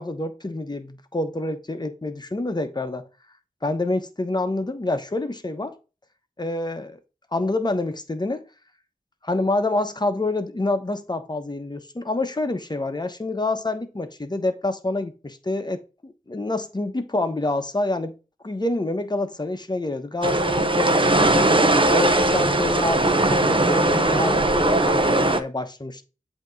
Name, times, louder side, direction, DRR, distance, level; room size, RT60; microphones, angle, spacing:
voice 1, 0.0-3.1 3.6-5.7 6.4-7.0 7.3-8.4 9.2-18.2 18.4-21.6 21.9-26.0, left 2 dB, 30° left, 1.0 m, -27 dB
sound 1, 20.2-25.4, right 2 dB, 35° right, 0.9 m, -19 dB
8.1 x 3.0 x 5.2 m
wide cardioid pair, 55°, 15 cm